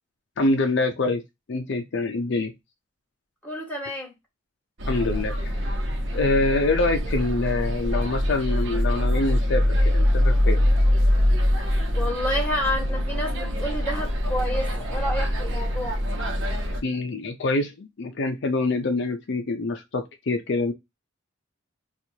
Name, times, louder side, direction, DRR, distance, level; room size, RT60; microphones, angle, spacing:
voice 1, 0.4-1.2 1.5-2.5 4.9-5.6 6.1-10.6 16.8-20.7, left 2 dB, 60° left, 0.5 m, -25 dB
voice 2, 3.4-4.1 6.1-6.2 11.9-16.0, equal, 10° left, 1.4 m, -29 dB
sound 1, 4.8-16.8, left 1 dB, 60° right, 1.0 m, -23 dB
4.4 x 2.4 x 2.7 m
head